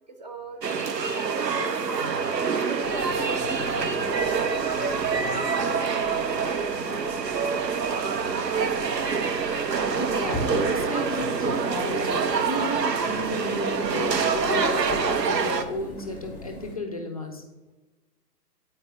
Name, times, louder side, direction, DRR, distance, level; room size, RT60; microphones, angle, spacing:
voice 1, 0.2-0.9 1.1-2.2 2.7-5.9, right 3 dB, 30° right, 5 dB, 0.5 m, -40 dB
sound 1, 0.6-15.6, right 5 dB, 90° right, 0.8 m, -26 dB
sound 2, 2.8-16.7, left 1 dB, 5° left, 0.8 m, -40 dB
Bowed string instrument, 8.6-12.8, right 6 dB, 55° right, 0.8 m, -46 dB
voice 2, 10.0-17.4, left 1 dB, 25° left, 4 dB, 0.4 m, -33 dB
9.2 x 4.3 x 3.3 m, 1.1 s
figure-of-eight pair, 135°, 48 cm